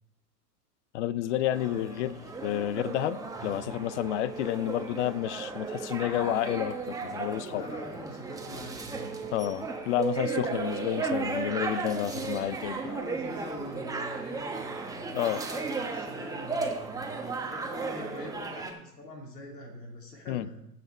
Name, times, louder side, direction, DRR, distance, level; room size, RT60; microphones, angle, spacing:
voice 1, 0.9-2.1 2.4-7.6 9.3-12.7 15.1-15.4 20.3-20.5, left 12 dB, 45° left, 18 dB, 0.6 m, -30 dB
sound 1, 1.5-18.7, right 4 dB, 5° right, 1.2 m, -35 dB
voice 2, 1.6-2.1 7.5-9.3 12.7-20.6, left 1 dB, 80° left, 1 dB, 2.5 m, -44 dB
Keyboard (musical), 10.0-12.5, right 11 dB, 75° right, 1.0 m, -37 dB
15.5 x 5.9 x 4.4 m, 0.81 s
hypercardioid pair, 105°, 48 cm